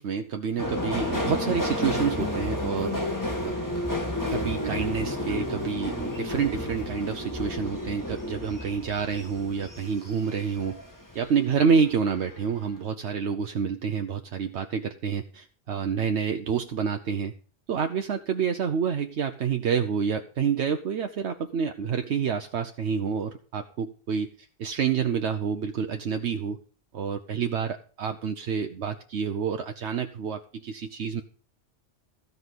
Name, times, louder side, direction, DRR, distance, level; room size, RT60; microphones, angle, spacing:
voice 1, 0.0-3.0 3.4-3.5 4.3-10.8 11.1-17.3 17.7-26.6 26.9-31.2, right 6 dB, 75° right, 6 dB, 1.1 m, -28 dB
Subway metro underground, 0.6-11.3 11.7-12.4 12.7-12.8, left 1 dB, 15° left, 2.4 m, -31 dB
15.5 x 5.4 x 8.1 m, 0.42 s
omnidirectional pair, 1.1 m